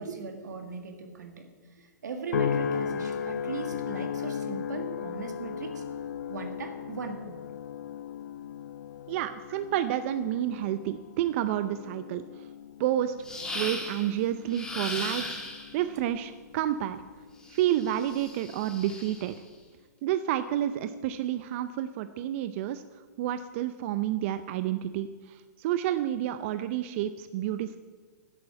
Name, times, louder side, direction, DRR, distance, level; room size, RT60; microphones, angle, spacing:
voice 1, 0.0-5.8 6.3-7.4, right 4 dB, 85° right, 5 dB, 2.0 m, -38 dB
sound 1, 2.3-16.8 17.3-17.8, left 7 dB, 80° left, 0.6 m, -36 dB
voice 2, 9.1-12.5 12.8-13.1 13.5-15.4 15.7-17.0 17.5-19.4 20.0-22.8 23.2-27.8, right 12 dB, 45° right, 11 dB, 0.6 m, -30 dB
sound 2, 13.2-14.1 14.5-15.8 17.4-19.3, left 1 dB, 5° left, 2.0 m, -37 dB
10.5 x 8.5 x 8.9 m, 1.5 s
hypercardioid pair, 135°, 9 cm